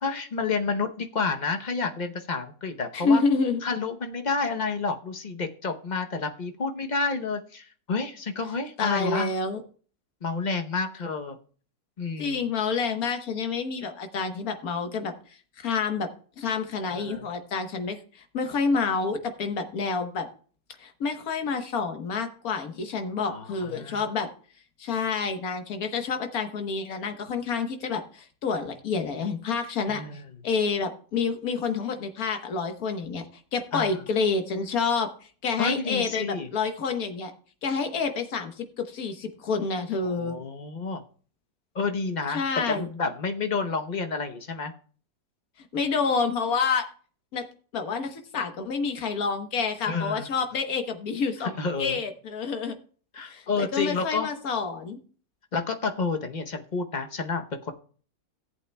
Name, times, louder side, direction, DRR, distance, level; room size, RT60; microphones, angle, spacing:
voice 1, 0.0-3.2 3.6-9.3 10.2-11.4 12.0-12.4 16.9-17.3 23.2-24.1 29.9-30.3 33.7-34.0 35.6-36.5 40.0-41.0 41.7-44.7 49.9-50.3 51.6-52.0 53.1-54.3 55.5-57.7, left 4 dB, 40° left, 5 dB, 0.7 m, -30 dB
voice 2, 2.9-3.6 8.8-9.6 12.2-15.1 15.6-16.1 16.4-20.3 20.8-24.3 24.8-30.0 30.4-33.2 33.5-35.1 35.4-37.3 37.6-40.4 42.3-42.9 45.7-46.8 47.3-47.4 47.7-52.7 53.2-55.0, left 5 dB, 65° left, 6 dB, 1.6 m, -28 dB
17.0 x 8.1 x 2.2 m, 0.43 s
omnidirectional pair, 1.7 m